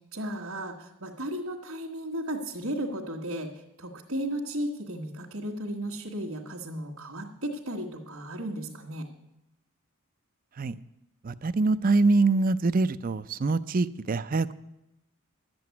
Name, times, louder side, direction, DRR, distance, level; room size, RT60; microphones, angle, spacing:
voice 1, 0.1-3.5 3.8-9.1, right 1 dB, 65° right, -4 dB, 1.6 m, -34 dB
voice 2, 11.2-14.5, right 3 dB, 40° right, 13 dB, 0.5 m, -24 dB
12.0 x 7.9 x 9.5 m, 0.88 s
head